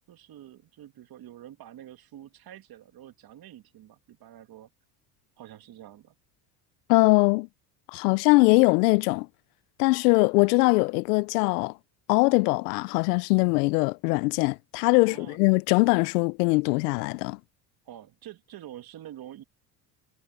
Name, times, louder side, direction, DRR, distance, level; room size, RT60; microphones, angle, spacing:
voice 1, 0.1-4.7 5.4-6.2 15.0-15.4 17.9-19.4, right 12 dB, 50° right, 2.1 m, -47 dB
voice 2, 6.9-7.5 7.9-9.3 9.8-11.7 12.1-17.4, left 26 dB, 85° left, 0.6 m, -22 dB
supercardioid pair, 80°, 46 cm